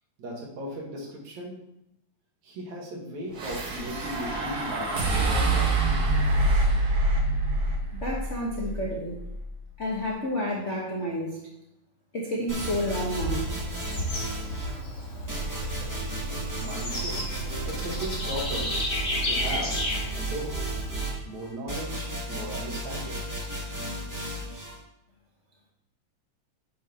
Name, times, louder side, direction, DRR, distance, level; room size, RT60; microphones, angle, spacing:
voice 1, 0.2-1.5 2.4-5.7 16.6-17.2 17.6-18.8 19.2-19.8 20.2-20.5 21.3-23.3, equal, 70° right, -2 dB, 3.0 m, -36 dB
sound 1, 3.3-9.7, right 2 dB, 50° right, 1.2 m, -26 dB
voice 2, 7.9-9.2 9.8-11.4 12.1-13.5, equal, 70° left, -3 dB, 0.6 m, -30 dB
Bird / Insect, 12.5-21.1, left 1 dB, 30° left, 1.8 m, -33 dB
sound 2, 12.5-14.8 15.3-24.8, right 2 dB, 25° right, 0.4 m, -34 dB
7.4 x 6.1 x 4.3 m, 0.85 s
omnidirectional pair, 3.4 m